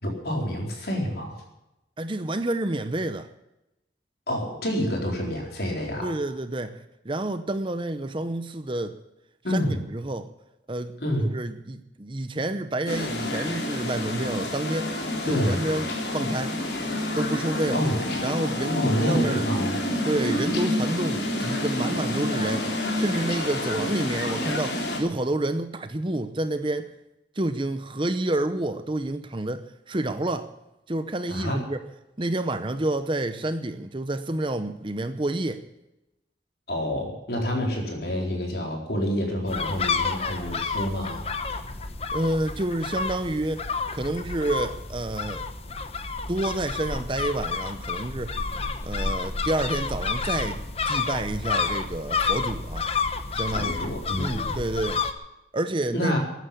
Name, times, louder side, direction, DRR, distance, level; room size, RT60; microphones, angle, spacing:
voice 1, 0.0-1.4 4.3-6.1 9.4-9.8 11.0-11.3 15.2-15.6 17.7-18.0 18.7-19.8 31.3-31.6 36.7-41.2 53.5-54.6 55.9-56.2, equal, 60° left, 4.4 m, -28 dB
voice 2, 2.0-3.3 6.0-6.8 7.0-9.0 9.5-10.3 10.7-15.9 16.1-16.6 17.2-17.8 18.2-19.4 20.1-22.7 23.0-26.9 27.4-30.5 30.9-31.8 32.2-35.6 42.1-45.4 46.3-48.4 48.8-52.9 53.3-55.0 55.5-56.1, right 1 dB, 30° right, 0.8 m, -29 dB
sound 1, 12.9-25.0, left 1 dB, 75° left, 3.5 m, -28 dB
sound 2, 39.5-55.1, left 4 dB, 35° left, 1.0 m, -30 dB
14.0 x 9.3 x 9.7 m
head